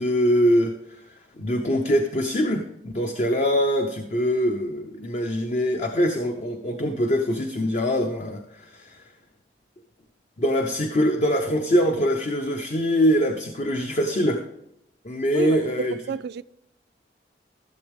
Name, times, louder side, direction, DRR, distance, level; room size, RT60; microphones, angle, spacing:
voice 1, 0.0-9.0 10.4-14.4 15.0-16.0, equal, 40° left, 0.8 m, -23 dB
voice 2, 15.3-16.4, right 5 dB, 65° right, 0.3 m, -30 dB
14.0 x 7.2 x 3.5 m
head